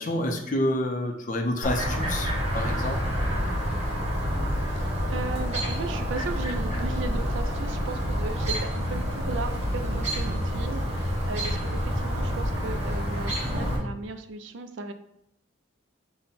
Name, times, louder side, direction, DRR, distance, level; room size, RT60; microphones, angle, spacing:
voice 1, 0.0-3.0, left 1 dB, 40° left, 3 dB, 0.6 m, -28 dB
Chirp tweet, 1.6-13.8, equal, 35° right, 1.4 m, -28 dB
voice 2, 4.6-14.9, right 3 dB, 65° right, 8 dB, 0.4 m, -36 dB
5.6 x 2.2 x 4.1 m, 0.77 s
head